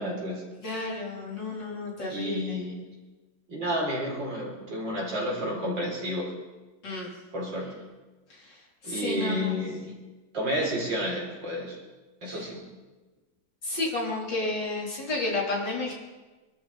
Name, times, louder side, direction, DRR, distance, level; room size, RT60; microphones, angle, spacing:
voice 1, 0.0-0.4 2.1-2.8 3.5-6.3 7.3-7.7 8.8-10.0 10.3-11.8 12.2-12.6, equal, 60° right, -2 dB, 4.7 m, -31 dB
voice 2, 0.6-2.4 6.8-7.1 8.3-9.6 12.2-12.4 13.6-15.9, left 2 dB, 60° left, -4 dB, 4.4 m, -32 dB
25.5 x 12.5 x 4.2 m, 1.2 s
omnidirectional pair, 2.2 m